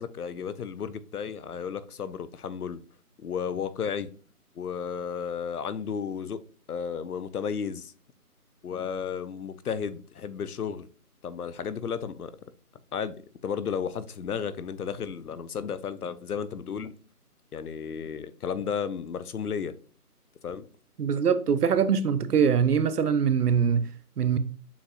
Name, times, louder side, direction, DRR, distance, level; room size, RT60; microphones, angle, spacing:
voice 1, 0.0-2.8 3.2-4.1 4.6-6.4 6.7-7.9 8.6-10.9 11.2-12.3 12.9-16.9 17.5-19.7 20.4-20.7, left 7 dB, 75° left, 0.6 m, -33 dB
voice 2, 21.0-24.4, right 7 dB, 80° right, 0.6 m, -23 dB
7.0 x 2.9 x 2.3 m
figure-of-eight pair, 180°, 46 cm